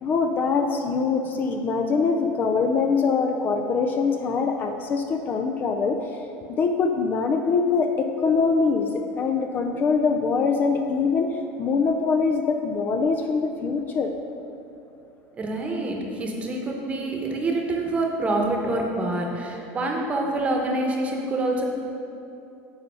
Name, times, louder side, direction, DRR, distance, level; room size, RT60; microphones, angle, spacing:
voice 1, 0.0-6.0 6.6-14.1, left 4 dB, 35° left, 4 dB, 0.4 m, -23 dB
voice 2, 15.4-21.6, right 2 dB, 20° right, 1 dB, 1.0 m, -26 dB
8.8 x 4.1 x 5.5 m, 2.8 s
cardioid pair, 140°, 6 cm